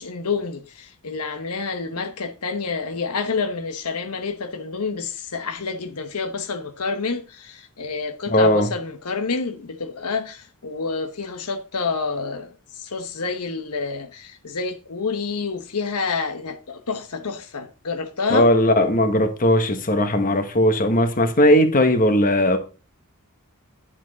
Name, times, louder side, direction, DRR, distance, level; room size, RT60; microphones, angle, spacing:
voice 1, 0.0-12.5 12.8-18.5, left 4 dB, 80° left, 1.1 m, -28 dB
voice 2, 8.3-8.7 18.3-22.6, left 1 dB, 40° left, 1.3 m, -18 dB
10.0 x 7.3 x 4.1 m
head